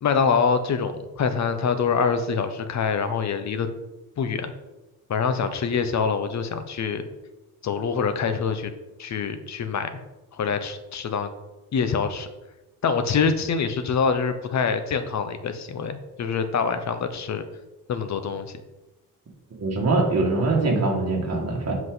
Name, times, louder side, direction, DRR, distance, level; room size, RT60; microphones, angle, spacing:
voice 1, 0.0-3.7 4.2-4.5 5.1-7.1 7.6-8.7 9.0-10.0 10.3-11.3 11.7-12.3 12.8-17.4 17.9-18.5, left 6 dB, 50° left, 9 dB, 0.8 m, -25 dB
voice 2, 19.6-21.7, right 3 dB, 45° right, -2 dB, 1.9 m, -23 dB
7.8 x 4.8 x 4.0 m, 1.0 s
cardioid pair, 130°, 36 cm